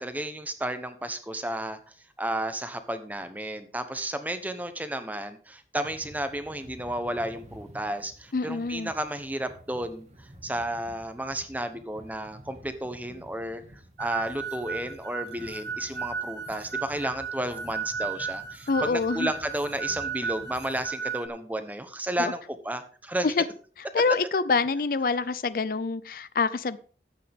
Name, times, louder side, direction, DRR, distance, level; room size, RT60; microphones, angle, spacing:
voice 1, 0.0-1.8 2.2-10.1 10.4-13.6 14.0-23.3, right 1 dB, 10° right, 9 dB, 0.9 m, -32 dB
sound 1, 5.8-20.8, right 1 dB, 40° right, 1.8 m, -50 dB
voice 2, 8.3-8.9 18.7-19.3 22.2-22.3 23.2-23.4 23.9-26.8, left 4 dB, 55° left, 16 dB, 0.4 m, -26 dB
sound 2, 14.0-21.3, right 5 dB, 80° right, 1.0 m, -35 dB
13.5 x 8.4 x 3.6 m, 0.42 s
head